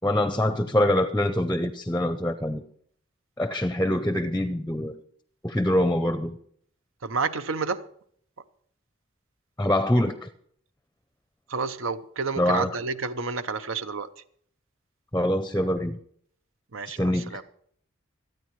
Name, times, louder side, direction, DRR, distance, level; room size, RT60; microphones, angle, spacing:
voice 1, 0.0-2.6 3.4-5.0 5.4-6.4 9.6-10.3 12.4-12.8 15.1-16.0 16.9-17.4, left 1 dB, 10° left, 0.5 m, -24 dB
voice 2, 7.0-7.8 11.5-14.1 16.7-17.4, right 4 dB, 80° right, 0.8 m, -30 dB
26.5 x 9.1 x 3.2 m
head